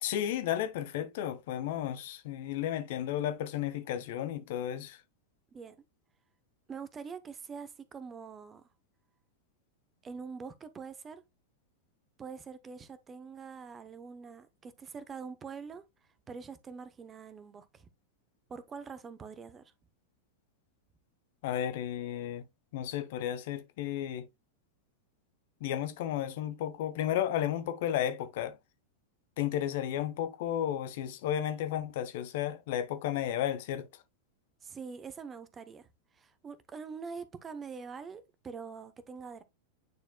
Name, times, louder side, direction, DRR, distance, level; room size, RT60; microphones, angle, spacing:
voice 1, 0.0-5.0 21.4-22.4 22.7-24.3 25.6-28.6 29.4-34.0, left 11 dB, 50° left, 0.8 m, -33 dB
voice 2, 6.7-8.7 10.0-11.2 12.2-15.8 16.3-17.9 18.5-19.6 34.6-35.9 36.1-39.4, right 5 dB, 20° right, 0.8 m, -44 dB
9.5 x 4.4 x 2.2 m
figure-of-eight pair, 90°, 0 cm